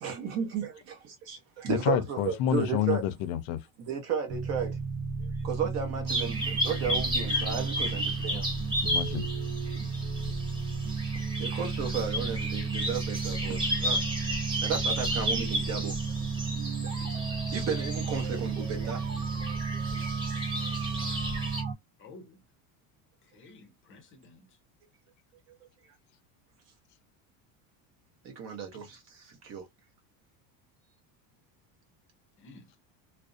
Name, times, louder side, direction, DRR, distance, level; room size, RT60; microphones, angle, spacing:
voice 1, 0.0-3.0 3.8-4.8 5.2-8.5 10.9-14.0 14.6-16.0 16.3-16.4 16.8-16.9 17.3-19.0 28.2-29.7, right 6 dB, 40° right, 0.7 m, -34 dB
voice 2, 1.7-3.6 8.8-9.3 21.0-21.2, left 10 dB, 75° left, 0.6 m, -29 dB
sound 1, 4.3-21.7, right 5 dB, 90° right, 0.8 m, -33 dB
sound 2, 6.1-21.6, equal, 10° right, 0.9 m, -33 dB
voice 3, 22.0-22.4 23.2-24.6 32.4-32.7, left 2 dB, 30° left, 0.6 m, -52 dB
2.5 x 2.1 x 2.5 m
cardioid pair, 170°, 40 cm